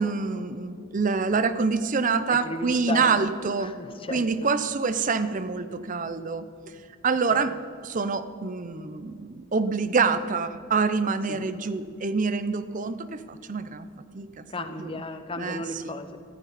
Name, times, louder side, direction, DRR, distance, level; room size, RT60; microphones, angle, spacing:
voice 1, 0.0-3.7 4.1-6.4 7.0-7.6 7.8-13.9 14.1-14.4 14.8-14.9 15.4-15.6, right 4 dB, 40° right, 13 dB, 0.6 m, -26 dB
voice 2, 2.3-3.3 3.6-4.3 7.3-7.5 11.3-11.4 14.5-16.2, left 2 dB, 25° left, 9 dB, 0.9 m, -34 dB
14.5 x 14.0 x 4.2 m, 2.4 s
head